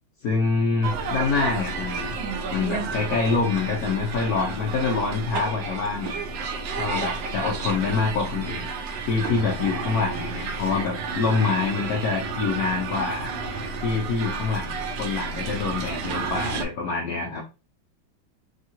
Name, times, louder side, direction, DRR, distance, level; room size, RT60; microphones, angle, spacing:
voice 1, 0.2-2.1 2.5-6.2 6.7-8.7 9.0-13.3 13.8-17.5, left 4 dB, 65° left, -1 dB, 1.0 m, -26 dB
sound 1, 0.8-16.7, right 4 dB, 75° right, 1.3 m, -31 dB
3.5 x 2.3 x 2.8 m, 0.31 s
omnidirectional pair, 2.1 m